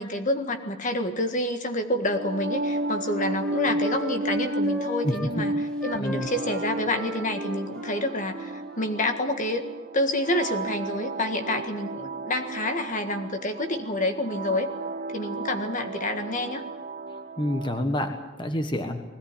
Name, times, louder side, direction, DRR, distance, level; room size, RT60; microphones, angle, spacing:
voice 1, 0.0-9.6 9.9-14.7 15.1-16.6, left 1 dB, 40° left, 7 dB, 1.6 m, -28 dB
sound 1, 2.0-17.9, right 2 dB, 40° right, 0.8 m, -33 dB
Wind instrument woodwind instrument, 2.2-5.3 5.8-9.0, equal, 5° left, 1.3 m, -40 dB
voice 2, 17.4-19.0, left 1 dB, 25° left, 6 dB, 1.5 m, -28 dB
21.0 x 17.5 x 9.8 m, 1.1 s
head